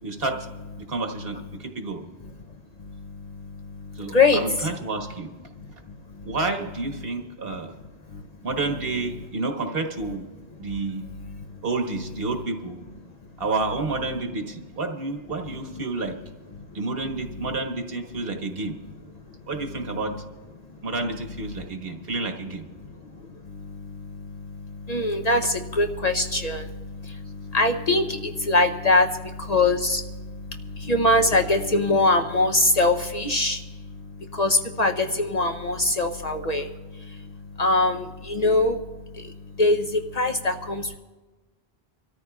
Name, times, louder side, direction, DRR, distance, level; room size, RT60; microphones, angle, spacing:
voice 1, 0.0-0.5 0.9-2.0 3.9-5.3 6.2-7.7 8.4-10.3 10.6-11.1 11.6-12.8 13.4-16.1 16.7-18.7 19.5-20.1 20.8-22.6, right 3 dB, 60° right, 4 dB, 1.4 m, -29 dB
voice 2, 2.8-4.7 5.6-5.7 6.1-6.4 8.1-8.2 10.7-11.4 16.5-16.6 21.5-21.7 23.0-23.1 23.4-38.8 39.1-41.0, left 2 dB, 45° left, 4 dB, 0.7 m, -24 dB
26.0 x 13.5 x 2.3 m, 1.2 s
omnidirectional pair, 1.1 m